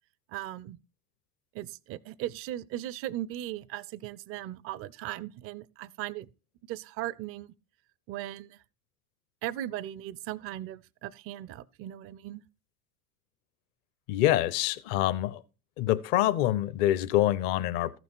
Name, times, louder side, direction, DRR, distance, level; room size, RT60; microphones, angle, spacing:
voice 1, 0.3-0.8 1.5-6.3 6.7-7.5 8.1-8.6 9.4-12.4, right 13 dB, 30° right, 0.5 m, -38 dB
voice 2, 14.1-15.4 15.8-18.0, left 14 dB, 45° left, 0.8 m, -26 dB
14.5 x 6.1 x 4.4 m
figure-of-eight pair, 75°, 46 cm